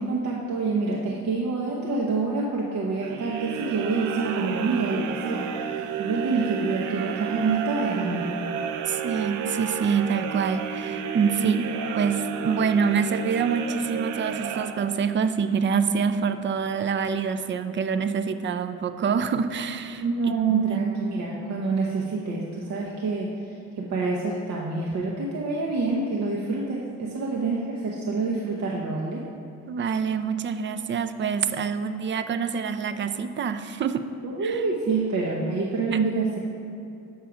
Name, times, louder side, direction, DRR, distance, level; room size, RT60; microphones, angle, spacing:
voice 1, 0.0-8.4 11.4-11.6 20.0-23.3 23.8-29.2 34.2-36.4, right 4 dB, 65° right, -3 dB, 0.9 m, -27 dB
sound 1, 3.0-15.3, right 7 dB, 90° right, 0.5 m, -32 dB
voice 2, 8.9-11.6 11.9-20.0 20.5-20.9 29.7-34.0 34.4-34.6 35.9-36.0, right 6 dB, 40° right, 10 dB, 0.5 m, -26 dB
7.2 x 5.7 x 4.9 m, 2.6 s
cardioid pair, 90°, 30 cm